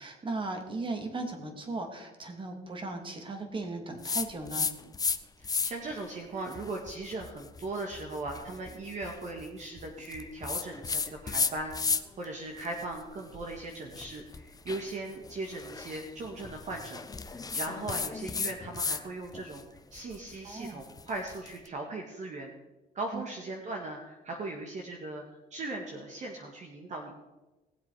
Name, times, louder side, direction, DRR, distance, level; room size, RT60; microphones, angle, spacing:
voice 1, 0.0-4.7 20.4-20.8 23.1-23.2, right 2 dB, 30° right, 5 dB, 2.5 m, -37 dB
sound 1, 4.0-5.2 5.4-5.9 6.5-12.2 12.6-19.0 19.3-21.5, left 5 dB, 20° left, 0.8 m, -35 dB
voice 2, 5.4-22.5 22.9-25.2 25.5-27.2, right 2 dB, 45° right, 1 dB, 1.9 m, -39 dB
19.0 x 7.9 x 5.0 m, 1.1 s
cardioid pair, 110°, 17 cm